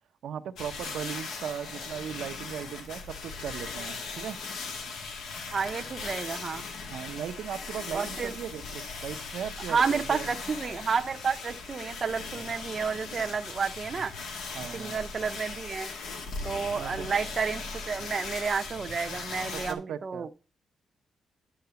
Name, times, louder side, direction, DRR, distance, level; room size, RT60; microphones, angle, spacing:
voice 1, 0.2-4.4 6.9-10.3 14.5-15.1 16.7-17.1 19.5-20.3, right 9 dB, 80° right, 0.7 m, -38 dB
sound 1, 0.6-19.7, left 4 dB, 90° left, 1.7 m, -39 dB
voice 2, 5.5-6.6 7.9-8.4 9.7-14.1 14.7-15.9 16.4-20.3, right 5 dB, 35° right, 0.6 m, -30 dB
10.5 x 3.9 x 6.9 m
wide cardioid pair, 155°, 0 cm